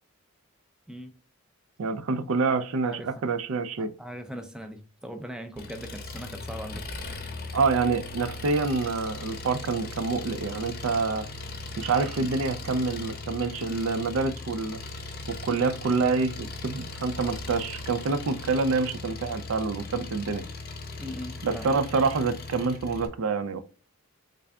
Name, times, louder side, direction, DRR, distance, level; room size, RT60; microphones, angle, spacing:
voice 1, 1.8-3.9 7.5-11.3 11.8-14.8 15.3-20.5 21.4-23.6, right 4 dB, 70° right, 0.4 m, -27 dB
voice 2, 2.8-3.3 3.8-7.3 21.0-21.6, equal, 5° right, 0.3 m, -40 dB
Engine, 5.6-23.1, left 2 dB, 45° left, 0.6 m, -39 dB
3.7 x 3.3 x 2.3 m
head